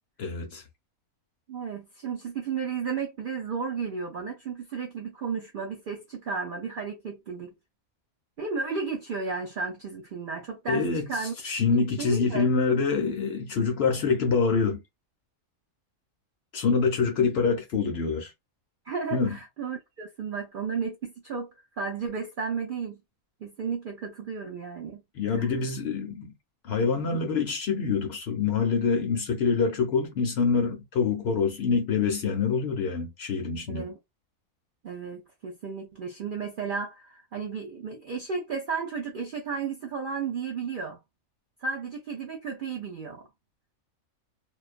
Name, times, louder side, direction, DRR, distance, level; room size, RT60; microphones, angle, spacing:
voice 1, 0.2-0.6 10.7-14.8 16.5-18.3 19.1-19.4 25.2-26.3 26.6-33.9, left 5 dB, 65° left, 0.7 m, -26 dB
voice 2, 1.5-7.6 8.4-11.3 11.7-12.5 18.9-21.5 21.8-23.0 23.4-25.0 25.3-25.5 33.7-34.0 34.8-41.0 41.6-43.2, right 5 dB, 75° right, 0.4 m, -33 dB
2.3 x 2.2 x 2.4 m
omnidirectional pair, 1.5 m